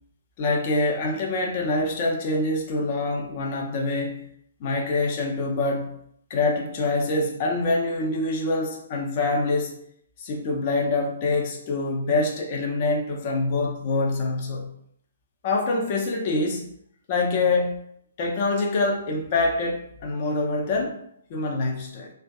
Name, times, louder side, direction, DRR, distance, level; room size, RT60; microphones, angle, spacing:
voice 1, 0.4-4.3 4.6-6.0 6.3-9.8 10.2-14.7 15.4-16.7 17.1-17.8 18.2-21.0 21.3-22.1, left 2 dB, 35° left, 1 dB, 0.5 m, -25 dB
2.5 x 2.3 x 2.3 m, 0.69 s
figure-of-eight pair, 125°, 0 cm